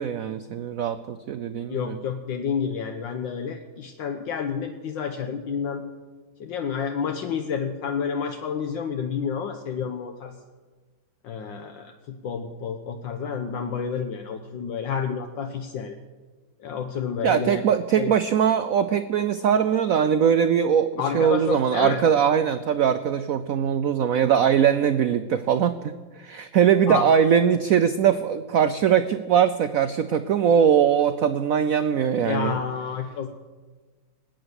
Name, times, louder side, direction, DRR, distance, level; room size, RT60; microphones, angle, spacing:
voice 1, 0.0-2.0 17.2-32.6, right 8 dB, 85° right, 11 dB, 0.7 m, -21 dB
voice 2, 1.7-5.8 6.4-10.4 11.2-16.0 16.6-17.6 17.9-18.1 21.0-22.0 26.9-27.1 32.2-33.3, left 6 dB, 70° left, 6 dB, 1.5 m, -29 dB
19.5 x 8.9 x 8.0 m, 1.4 s
omnidirectional pair, 2.2 m